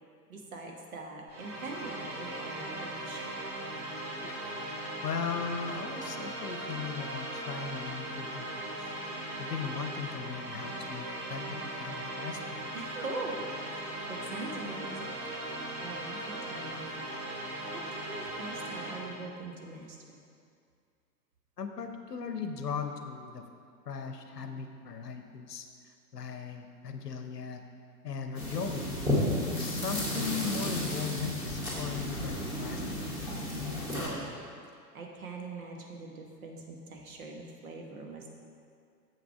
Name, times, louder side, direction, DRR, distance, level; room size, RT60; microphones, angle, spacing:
voice 1, 0.3-3.4 12.7-13.4 13.8-15.1 15.8-17.1 17.5-20.2 33.9-34.3 34.9-38.3, right 3 dB, 55° right, 1 dB, 1.3 m, -42 dB
sound 1, 1.3-19.2, right 1 dB, 40° right, 1.6 m, -39 dB
voice 2, 5.0-8.8 9.4-12.6 21.6-23.5 23.9-25.7 26.1-27.6 28.0-28.9 29.6-33.0, left 6 dB, 70° left, 6 dB, 0.8 m, -38 dB
sound 2, 28.3-34.1, left 1 dB, 5° right, 2.1 m, -32 dB
7.3 x 6.0 x 4.6 m, 2.3 s
figure-of-eight pair, 105°, 49 cm